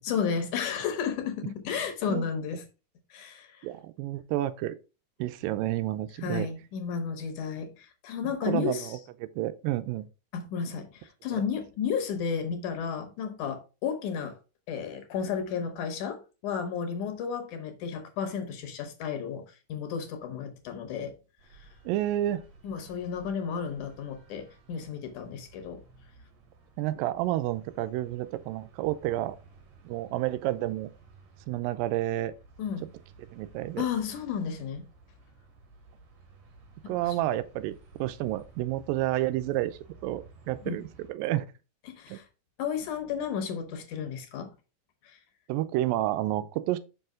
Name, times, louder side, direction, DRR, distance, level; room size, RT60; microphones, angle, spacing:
voice 1, 0.0-2.6 3.1-3.7 6.2-9.0 10.3-14.4 14.7-21.2 21.5-21.7 22.6-25.8 32.6-32.9 33.8-34.8 36.8-37.2 40.6-40.8 41.9-42.3 42.6-44.5 45.0-45.2, left 7 dB, 70° left, 2.3 m, -33 dB
voice 2, 3.6-4.8 5.2-6.5 8.2-9.0 9.4-10.1 11.3-11.4 21.9-22.4 26.8-29.4 29.9-30.9 31.5-32.3 33.3-33.9 36.9-40.8 41.1-41.5 42.1-42.2 45.5-46.8, right 14 dB, 90° right, 2.3 m, -30 dB
sound 1, 21.4-41.1, right 3 dB, 60° right, 2.2 m, -55 dB
5.6 x 5.5 x 3.7 m
omnidirectional pair, 3.9 m